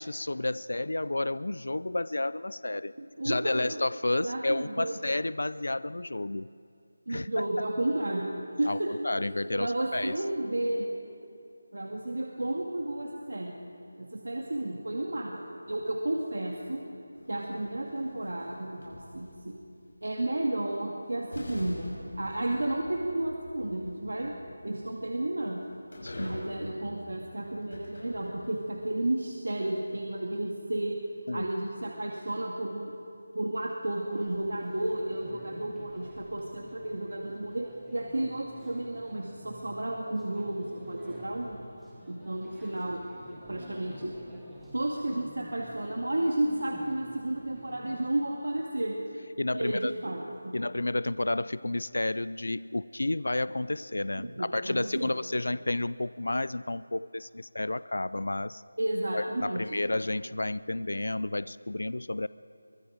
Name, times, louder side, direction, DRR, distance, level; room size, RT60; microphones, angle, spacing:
voice 1, 0.0-2.9 3.2-6.5 7.1-7.4 8.7-10.2 26.0-26.4 31.3-31.5 49.4-49.9 50.5-58.6 59.1-62.3, left 2 dB, 75° left, 17 dB, 0.5 m, -31 dB
voice 2, 3.2-3.8 4.2-5.0 7.1-8.3 8.6-8.9 9.6-10.9 11.7-13.6 14.0-16.8 17.3-19.6 20.0-24.3 24.6-25.6 26.2-31.0 31.3-32.9 33.3-41.6 42.1-43.0 43.5-44.1 44.7-49.0 49.5-50.6 54.2-55.4 58.8-59.8, right 1 dB, 80° right, 0 dB, 2.3 m, -32 dB
sound 1, 17.1-19.5 20.7-20.8 21.3-28.8, left 1 dB, 50° left, 5.8 m, -46 dB
sound 2, 34.1-48.1, equal, 5° right, 1.3 m, -50 dB
23.5 x 22.5 x 5.2 m, 2.5 s
figure-of-eight pair, 175°, 0 cm